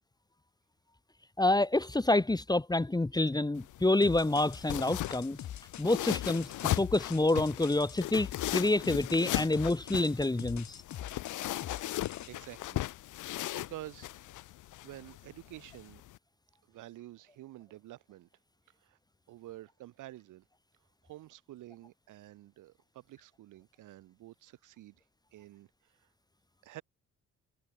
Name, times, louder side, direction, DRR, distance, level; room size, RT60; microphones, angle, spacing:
voice 1, 1.4-5.4 5.8-10.8, left 2 dB, 15° left, 1.8 m, -28 dB
sound 1, 3.6-16.2, left 15 dB, 85° left, 1.9 m, -38 dB
sound 2, 4.0-12.3, left 11 dB, 70° left, 4.3 m, -44 dB
voice 2, 12.3-12.8 13.2-14.1 14.8-16.0 16.7-18.3 18.8-19.0 19.3-20.4 21.0-25.0 25.3-26.1 26.6-26.8, right 15 dB, 85° right, 4.2 m, -49 dB
cardioid pair, 90°, 30 cm